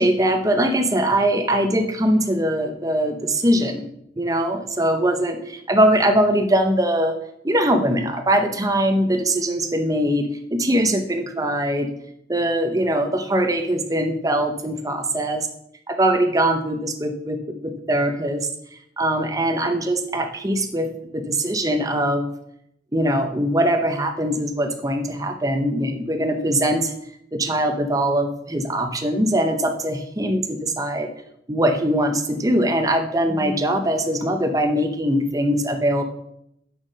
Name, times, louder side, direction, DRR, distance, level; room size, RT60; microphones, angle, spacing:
voice 1, 0.0-3.9 4.2-7.1 7.4-11.9 12.3-15.4 15.9-18.5 19.0-20.9 21.1-22.3 22.9-26.9 27.3-31.1 31.5-36.0, right 1 dB, 20° right, 6 dB, 0.7 m, -21 dB
6.5 x 5.9 x 5.1 m, 0.77 s
head